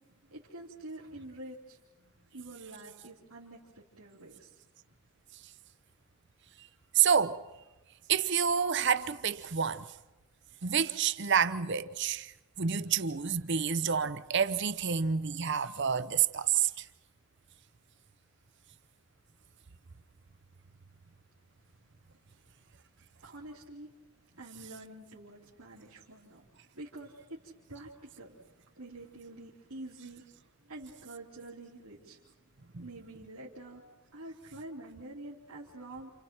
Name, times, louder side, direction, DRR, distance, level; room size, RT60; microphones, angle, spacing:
voice 1, 0.2-1.8 2.2-4.6 23.2-23.9 24.4-26.4 26.7-32.2 32.8-36.1, right 2 dB, 85° right, 3.0 m, -47 dB
voice 2, 6.9-7.4 8.1-9.8 10.6-12.3 12.6-16.8 32.7-32.8, right 7 dB, 50° right, 0.7 m, -28 dB
29.0 x 29.0 x 4.4 m
head